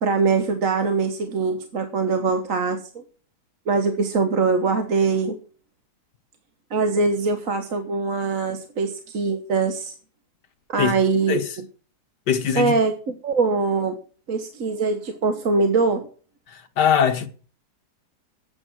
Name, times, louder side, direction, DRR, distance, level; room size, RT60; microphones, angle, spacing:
voice 1, 0.0-3.0 3.7-5.4 6.7-9.9 10.7-11.4 12.5-14.0 14.3-16.1, right 4 dB, 55° right, 1.6 m, -22 dB
voice 2, 12.3-12.7 16.5-17.3, left 8 dB, 80° left, 2.0 m, -21 dB
13.0 x 8.9 x 6.2 m
omnidirectional pair, 1.8 m